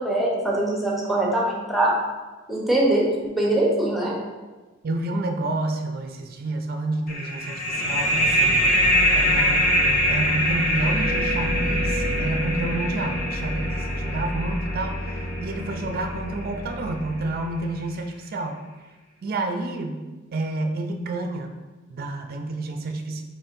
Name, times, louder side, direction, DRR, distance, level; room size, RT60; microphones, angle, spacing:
voice 1, 0.0-2.0 2.5-3.0 3.3-4.1, right 1 dB, ahead, -4 dB, 0.8 m, -22 dB
voice 2, 4.8-8.8 9.1-18.6 19.2-20.0 20.3-21.6 21.9-23.2, right 2 dB, 50° right, 5 dB, 0.4 m, -29 dB
sound 1, 7.1-16.4, equal, 45° left, 0.7 m, -24 dB
sound 2, 7.7-17.9, equal, 70° left, 1.1 m, -30 dB
4.3 x 4.2 x 2.5 m, 1.2 s
head